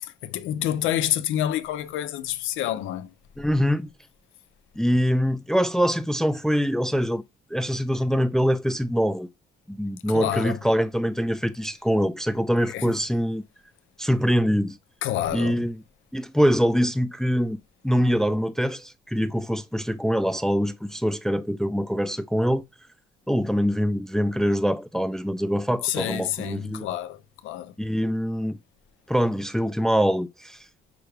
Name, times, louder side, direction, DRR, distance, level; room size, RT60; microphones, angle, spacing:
voice 1, 0.2-3.1 10.1-10.6 12.7-12.9 15.0-15.6 25.8-27.7, left 12 dB, 90° left, 0.5 m, -28 dB
voice 2, 3.4-3.9 4.8-7.2 7.5-9.3 9.7-13.4 14.0-14.8 15.3-15.8 16.1-17.6 17.8-22.6 23.3-26.9 27.8-28.6 29.1-30.6, equal, 5° left, 0.4 m, -24 dB
6.1 x 2.3 x 3.2 m
cardioid pair, 90°, 20 cm